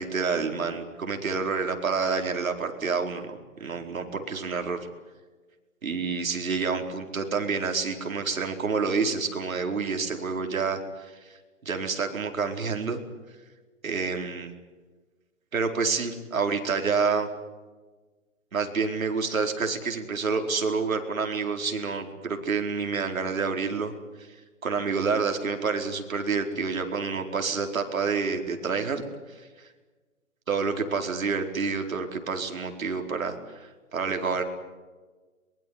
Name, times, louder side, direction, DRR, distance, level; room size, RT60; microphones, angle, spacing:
voice 1, 0.0-4.8 5.8-11.2 11.6-13.0 13.8-14.5 15.5-17.3 18.5-23.9 24.6-29.0 30.5-34.4, right 5 dB, 80° right, 5 dB, 4.7 m, -28 dB
23.5 x 22.0 x 9.7 m, 1.3 s
hypercardioid pair, 170°, 41 cm